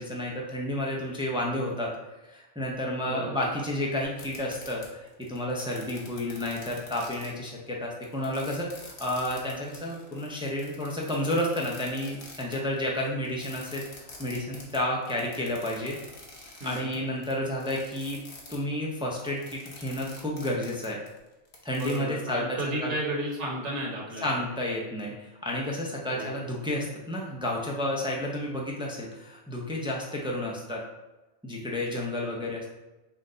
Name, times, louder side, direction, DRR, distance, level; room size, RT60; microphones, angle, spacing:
voice 1, 0.0-1.9 2.3-16.0 16.6-18.2 18.5-21.0 21.6-22.9 24.2-25.1 25.4-30.8 31.4-32.7, left 1 dB, 5° right, -2 dB, 0.4 m, -31 dB
voice 2, 3.1-3.5 16.6-17.0 21.7-24.3 26.1-26.4, right 1 dB, 70° right, -2 dB, 1.3 m, -33 dB
sound 1, 4.0-18.6 19.1-22.0, left 2 dB, 50° left, 1.1 m, -47 dB
5.7 x 2.2 x 3.8 m, 1.1 s
omnidirectional pair, 1.3 m